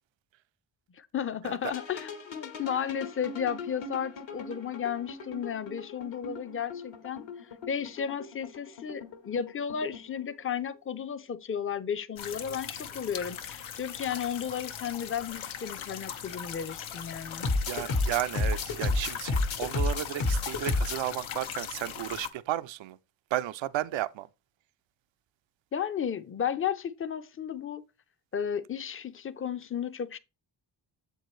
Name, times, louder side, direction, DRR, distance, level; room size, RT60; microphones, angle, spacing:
voice 1, 0.9-7.3 7.7-17.5 25.7-27.8 28.3-30.2, left 8 dB, 30° left, 0.5 m, -33 dB
sound 1, 1.7-10.3 17.4-21.0, left 3 dB, 65° left, 1.3 m, -33 dB
sound 2, 12.2-22.3, left 8 dB, 85° left, 0.8 m, -40 dB
voice 2, 17.7-23.0 23.3-24.3, right 14 dB, 70° right, 0.5 m, -33 dB
7.4 x 4.6 x 3.1 m
cardioid pair, 60°, 48 cm